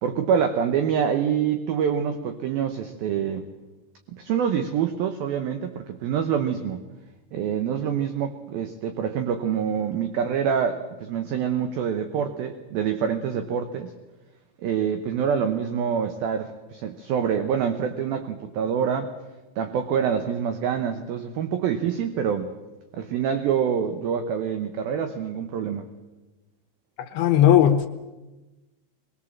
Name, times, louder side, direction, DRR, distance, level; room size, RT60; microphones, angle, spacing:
voice 1, 0.0-3.5 4.1-6.8 7.3-13.9 14.6-19.1 19.6-22.5 22.9-25.8, right 7 dB, 70° right, 8 dB, 2.5 m, -26 dB
voice 2, 27.0-27.9, left 10 dB, 70° left, 9 dB, 2.7 m, -17 dB
23.5 x 22.0 x 7.4 m, 1.1 s
omnidirectional pair, 5.3 m